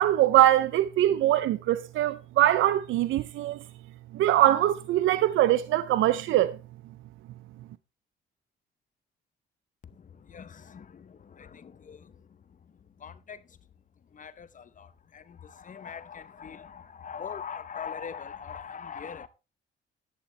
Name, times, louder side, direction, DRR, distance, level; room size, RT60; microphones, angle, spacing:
voice 1, 0.0-3.6 4.1-6.6, right 13 dB, 80° right, 0.5 m, -22 dB
voice 2, 10.3-12.0 13.0-13.4 14.1-14.9 15.1-19.3, left 7 dB, 40° left, 0.8 m, -41 dB
11.5 x 10.0 x 3.2 m
cardioid pair, 90°, 20 cm